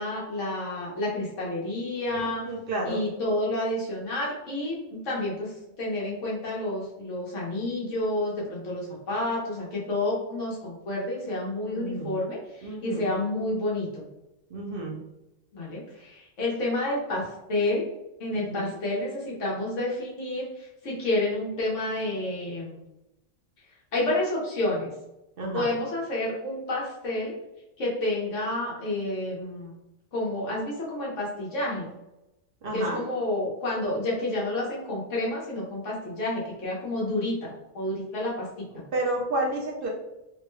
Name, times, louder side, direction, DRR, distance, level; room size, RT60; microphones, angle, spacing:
voice 1, 0.0-2.4 2.8-4.8 5.0-5.5 5.8-14.1 15.5-17.2 17.5-17.9 18.2-22.8 23.9-24.9 25.5-27.3 27.8-29.7 30.1-31.9 32.7-38.5, left 1 dB, 85° left, -4 dB, 1.5 m, -29 dB
voice 2, 2.1-3.0 11.6-12.1 12.6-13.1 14.5-15.0 18.3-18.7 25.4-25.7 32.6-33.0 38.9-39.9, right 1 dB, 55° right, -1 dB, 0.8 m, -31 dB
3.6 x 2.2 x 3.1 m, 0.91 s
omnidirectional pair, 1.2 m